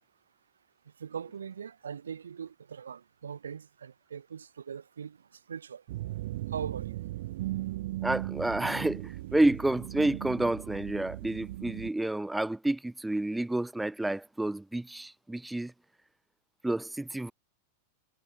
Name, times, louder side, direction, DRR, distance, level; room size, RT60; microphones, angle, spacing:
voice 1, 0.8-5.8 6.5-7.0, right 7 dB, 70° right, 1.6 m, -41 dB
sound 1, 5.9-11.9, right 16 dB, 55° right, 1.0 m, -37 dB
voice 2, 8.0-15.7 16.6-17.3, right 1 dB, 5° right, 0.3 m, -29 dB
figure-of-eight pair, 90°, 0 cm